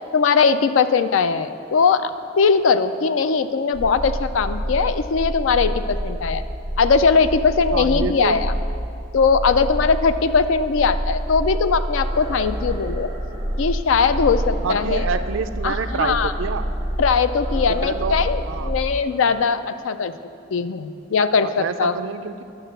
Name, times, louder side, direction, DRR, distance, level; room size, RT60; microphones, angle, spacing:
voice 1, 0.1-2.1 2.4-6.4 6.8-8.5 9.1-13.1 13.6-15.1 15.6-16.3 17.0-20.2 20.5-22.0, left 5 dB, 90° left, 12 dB, 0.4 m, -20 dB
sound 1, 3.7-19.0, equal, 75° right, 1.5 m, -27 dB
voice 2, 7.7-8.4 14.6-16.7 17.8-18.7 21.4-22.4, right 5 dB, 90° right, 10 dB, 0.4 m, -27 dB
sound 2, 12.0-13.7 14.1-15.5 15.9-17.0 17.4-18.6 18.8-19.6, equal, 20° right, 1.4 m, -40 dB
11.5 x 4.1 x 6.6 m, 2.5 s
head